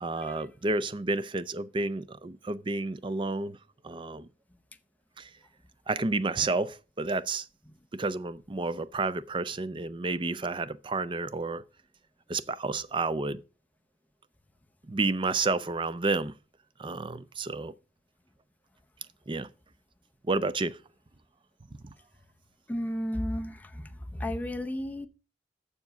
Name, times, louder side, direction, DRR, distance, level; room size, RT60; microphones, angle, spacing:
voice 1, 0.0-3.6 3.8-4.3 5.2-5.3 5.9-7.5 7.9-11.6 12.3-13.4 14.9-16.3 16.8-17.7 19.3-19.5 20.2-20.8, right 3 dB, 30° right, 0.5 m, -30 dB
voice 2, 22.7-23.8 24.2-25.1, left 1 dB, 10° left, 0.7 m, -33 dB
7.1 x 6.9 x 6.2 m
head